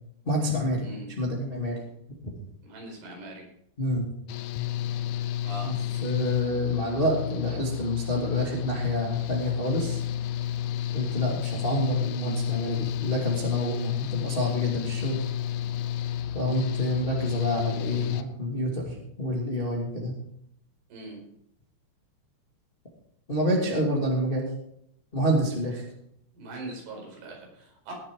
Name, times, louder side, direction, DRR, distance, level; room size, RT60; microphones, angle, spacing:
voice 1, 0.2-0.9 1.2-1.8 3.8-4.1 5.6-5.7 6.0-10.0 10.9-15.2 16.3-20.1 23.3-24.5 25.1-25.8, equal, 25° left, -2 dB, 1.2 m, -28 dB
voice 2, 2.6-3.4 5.4-5.7 20.9-21.2 26.3-27.9, right 2 dB, 75° right, -1 dB, 7.3 m, -41 dB
Engine / Mechanical fan, 4.3-18.2, left 10 dB, 80° left, 2.9 m, -31 dB
19.5 x 7.4 x 4.8 m, 0.74 s
omnidirectional pair, 5.7 m